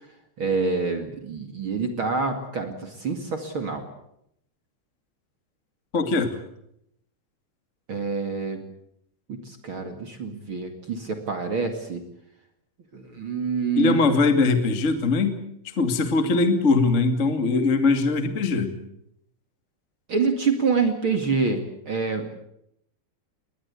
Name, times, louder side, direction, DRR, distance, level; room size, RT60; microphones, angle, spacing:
voice 1, 0.4-3.9 7.9-8.6 9.3-12.0 12.9-14.0 20.1-22.4, right 4 dB, 40° right, 6 dB, 2.0 m, -26 dB
voice 2, 5.9-6.4 13.7-15.4 15.8-18.7, left 3 dB, 30° left, 8 dB, 1.4 m, -21 dB
22.0 x 20.0 x 8.4 m, 0.76 s
omnidirectional pair, 5.2 m